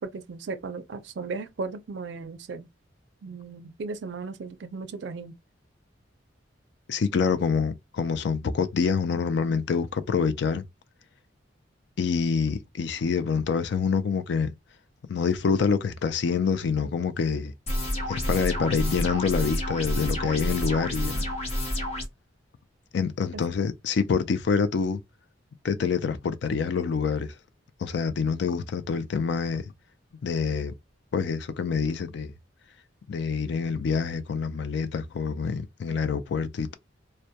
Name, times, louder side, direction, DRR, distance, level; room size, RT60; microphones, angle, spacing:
voice 1, 0.0-2.7 3.2-5.4 23.3-23.4, right 4 dB, 65° right, 0.4 m, -36 dB
voice 2, 6.9-10.6 12.0-14.5 15.1-17.5 18.1-21.2 22.9-25.0 25.6-27.3 27.8-29.7 30.2-30.7 31.1-32.3 33.1-36.7, left 5 dB, 60° left, 0.3 m, -26 dB
sound 1, 17.7-22.1, left 1 dB, 35° left, 0.7 m, -29 dB
2.2 x 2.1 x 2.7 m
head